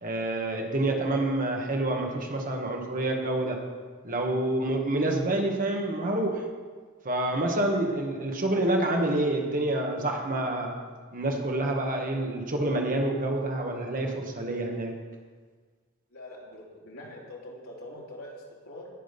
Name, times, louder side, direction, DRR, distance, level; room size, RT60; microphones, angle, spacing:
voice 1, 0.0-3.6 4.0-6.4 7.0-10.8 11.1-14.9, right 1 dB, 40° right, 1 dB, 1.7 m, -27 dB
voice 2, 16.1-18.9, left 1 dB, 80° left, -4 dB, 3.2 m, -44 dB
18.0 x 6.3 x 5.4 m, 1.5 s
head